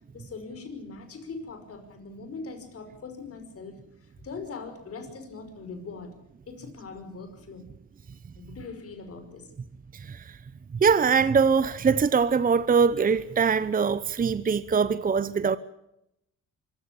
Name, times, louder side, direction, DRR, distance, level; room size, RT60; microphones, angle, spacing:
voice 1, 0.1-6.1 6.5-7.7 8.3-9.5, left 4 dB, 50° left, 5.5 m, -41 dB
voice 2, 9.9-10.4 10.7-15.6, right 5 dB, 30° right, 0.8 m, -23 dB
24.5 x 15.0 x 8.7 m
cardioid pair, 90°, 30 cm